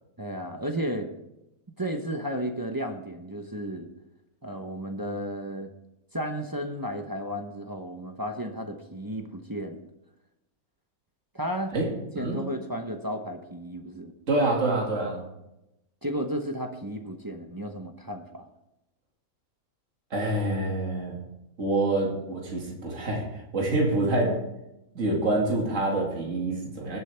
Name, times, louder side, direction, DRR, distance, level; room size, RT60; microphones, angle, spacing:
voice 1, 0.2-1.1 1.8-3.9 4.4-5.7 6.1-9.8 11.3-11.7 12.1-14.1 16.0-18.5, equal, 20° right, 4 dB, 0.8 m, -33 dB
voice 2, 14.3-15.2 20.1-21.2 21.6-24.4 24.9-27.0, right 2 dB, 55° right, -1 dB, 2.6 m, -26 dB
19.5 x 8.3 x 3.4 m, 0.90 s
omnidirectional pair, 1.6 m